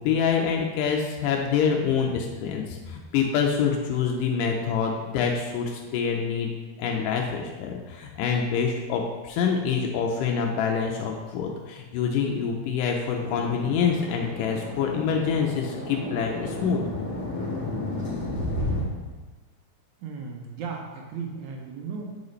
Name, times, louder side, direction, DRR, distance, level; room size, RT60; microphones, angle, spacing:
voice 1, 0.0-6.5 6.8-16.8, left 6 dB, 90° left, 1 dB, 2.2 m, -26 dB
sound 1, 13.2-18.8, left 1 dB, 40° left, 1.5 m, -32 dB
voice 2, 20.0-22.2, right 5 dB, 75° right, 1 dB, 1.9 m, -36 dB
8.2 x 4.8 x 3.2 m, 1.3 s
omnidirectional pair, 3.7 m